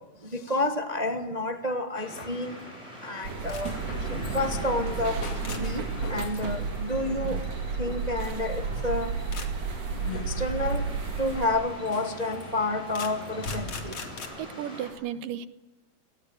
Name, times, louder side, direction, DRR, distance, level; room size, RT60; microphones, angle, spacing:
voice 1, 0.2-2.5 3.0-5.2 5.5-7.4 7.8-9.2 10.2-10.9 11.2-14.0, left 1 dB, 40° right, 7 dB, 0.5 m, -30 dB
sound 1, 1.9-14.9, equal, 10° left, 7.4 m, -43 dB
sound 2, 3.2-11.5, right 5 dB, 65° right, 3.6 m, -32 dB
sound 3, 3.4-14.3, left 4 dB, 45° left, 3.3 m, -41 dB
voice 2, 14.4-15.5, right 10 dB, 90° right, 13 dB, 2.8 m, -34 dB
29.5 x 18.5 x 8.7 m, 1.0 s
omnidirectional pair, 3.8 m